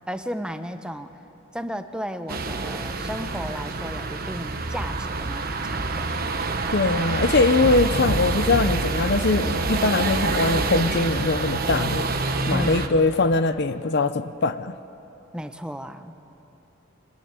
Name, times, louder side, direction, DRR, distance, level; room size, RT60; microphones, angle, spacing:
voice 1, 0.1-1.2 1.5-6.1 12.5-13.0 15.3-16.2, equal, 5° right, 8 dB, 0.8 m, -34 dB
sound 1, 2.3-12.9, right 3 dB, 50° right, 1.3 m, -26 dB
voice 2, 6.7-12.1 12.5-14.7, left 3 dB, 55° left, 12 dB, 0.7 m, -22 dB
24.5 x 21.0 x 9.7 m, 3.0 s
head